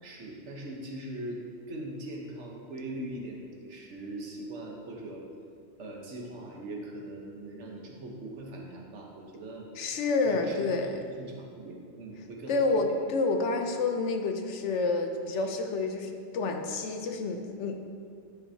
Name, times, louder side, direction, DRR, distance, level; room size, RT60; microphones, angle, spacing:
voice 1, 0.0-5.2 5.8-9.6 10.2-10.8 11.1-12.9 15.3-15.5, right 1 dB, 85° right, -1 dB, 1.4 m, -41 dB
voice 2, 9.8-11.0 12.5-17.8, left 3 dB, 85° left, 5 dB, 1.0 m, -29 dB
9.9 x 5.8 x 2.8 m, 2.3 s
omnidirectional pair, 1.2 m